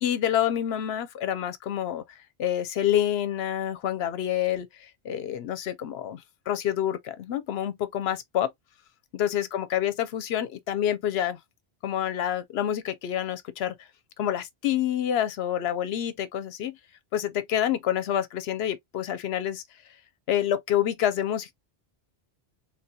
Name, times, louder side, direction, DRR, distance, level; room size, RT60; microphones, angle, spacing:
voice 1, 0.0-8.5 9.1-11.4 11.8-13.9 14.2-16.8 17.1-19.6 20.3-21.5, left 10 dB, 75° left, 0.8 m, -28 dB
3.6 x 2.8 x 2.2 m
omnidirectional pair, 1.1 m